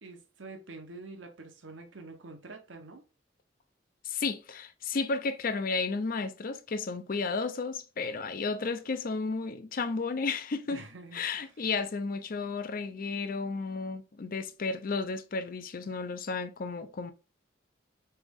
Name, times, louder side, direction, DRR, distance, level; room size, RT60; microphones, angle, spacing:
voice 1, 0.0-3.1 10.7-11.5, right 3 dB, 75° right, 0.9 m, -47 dB
voice 2, 4.0-10.8 11.1-17.1, left 4 dB, 50° left, 0.5 m, -33 dB
4.0 x 3.4 x 3.5 m
head